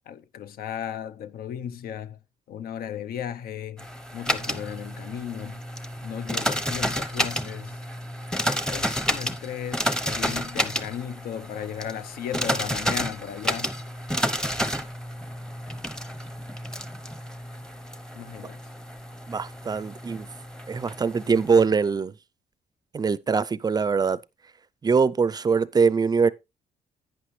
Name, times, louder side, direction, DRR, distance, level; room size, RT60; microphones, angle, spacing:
voice 1, 0.1-2.2 2.5-3.9 4.1-5.6 6.0-7.8 8.7-13.7 18.1-18.6, left 9 dB, 75° left, 0.8 m, -35 dB
sound 1, 3.8-21.6, equal, 5° left, 0.8 m, -31 dB
voice 2, 19.3-20.3 20.7-22.1 22.9-24.2 24.8-26.3, right 5 dB, 25° right, 0.4 m, -22 dB
11.5 x 8.8 x 3.2 m
cardioid pair, 130°, 16 cm